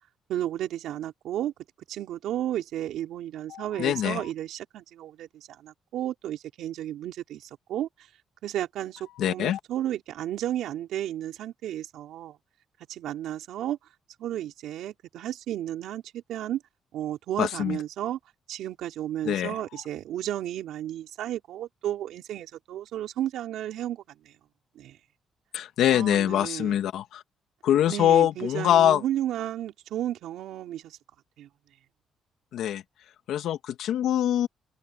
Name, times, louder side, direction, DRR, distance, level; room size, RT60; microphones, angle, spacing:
voice 1, 0.3-1.5 1.9-7.9 8.4-12.4 12.9-13.8 14.2-16.6 16.9-18.2 18.5-24.3 24.8-25.0 25.9-26.8 27.9-31.0 31.4-31.5, right 12 dB, 80° right, 4.3 m, -33 dB
voice 2, 3.5-4.3 9.2-9.6 17.4-17.8 19.2-19.6 25.5-27.2 27.6-29.0 32.5-32.8 33.3-34.5, left 11 dB, 80° left, 2.0 m, -24 dB
cardioid pair, 90°, 0 cm